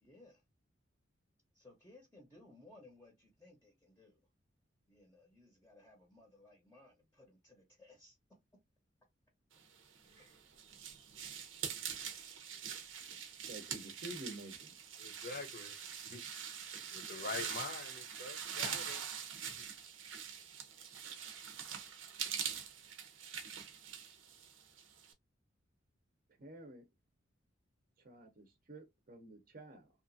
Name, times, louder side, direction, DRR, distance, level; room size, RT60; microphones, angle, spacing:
voice 1, 0.0-0.4 1.5-4.3 4.9-8.2 10.0-10.4, left 2 dB, 15° left, 0.7 m, -61 dB
sound 1, 10.0-25.1, right 8 dB, 90° right, 0.7 m, -44 dB
voice 2, 13.5-14.7 26.4-26.9 28.0-29.9, right 1 dB, 45° right, 0.6 m, -50 dB
voice 3, 15.0-19.1 19.5-19.7, left 4 dB, 50° left, 0.6 m, -46 dB
2.8 x 2.4 x 2.5 m
head